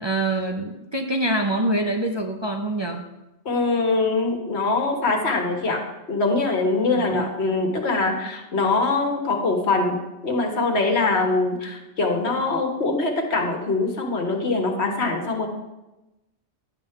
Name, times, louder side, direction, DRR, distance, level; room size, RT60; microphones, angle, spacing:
voice 1, 0.0-3.1 7.0-7.3, right 1 dB, 35° right, 2 dB, 0.5 m, -25 dB
voice 2, 3.4-5.8 6.1-10.0 10.2-15.5, left 3 dB, 75° left, 2 dB, 1.6 m, -23 dB
10.5 x 6.7 x 3.6 m, 1.0 s
omnidirectional pair, 1.1 m